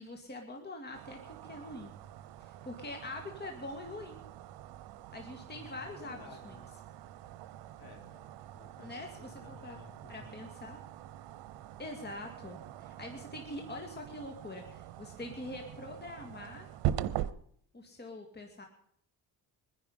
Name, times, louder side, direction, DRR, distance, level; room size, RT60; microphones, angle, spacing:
voice 1, 0.0-1.9 2.4-4.2 5.1-6.6 8.8-9.3 9.6-9.8 10.1-10.8 11.8-16.7 17.7-18.7, left 2 dB, 25° left, 3 dB, 2.2 m, -44 dB
sound 1, 0.9-17.3, right 12 dB, 85° right, 0.9 m, -43 dB
voice 2, 5.5-6.7 7.8-8.3 8.5-10.4, left 3 dB, 65° left, 0 dB, 6.0 m, -54 dB
23.0 x 10.0 x 5.5 m, 0.66 s
cardioid pair, 110°, 40 cm